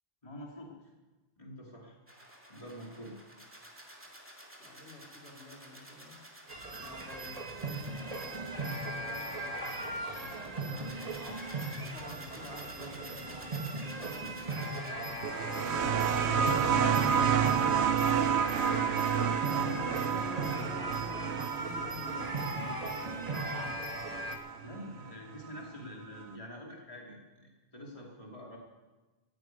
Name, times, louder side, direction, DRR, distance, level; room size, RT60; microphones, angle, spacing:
voice 1, 0.2-0.8 1.4-2.0 2.5-3.2 16.1-17.3 17.9-18.1 18.6-19.9 24.6-28.6, equal, 30° left, -1 dB, 2.7 m, -45 dB
sound 1, 2.1-14.9, right 1 dB, 10° right, 2.4 m, -53 dB
voice 2, 4.6-6.2 6.7-15.1 15.5-16.6 19.0-23.4, left 2 dB, 80° left, -2 dB, 3.9 m, -49 dB
sound 2, 6.5-24.4, right 2 dB, 35° right, 1.7 m, -38 dB
sound 3, 15.2-24.5 25.6-25.7, right 7 dB, 85° right, 1.1 m, -30 dB
14.5 x 9.5 x 9.3 m, 1.2 s
omnidirectional pair, 1.1 m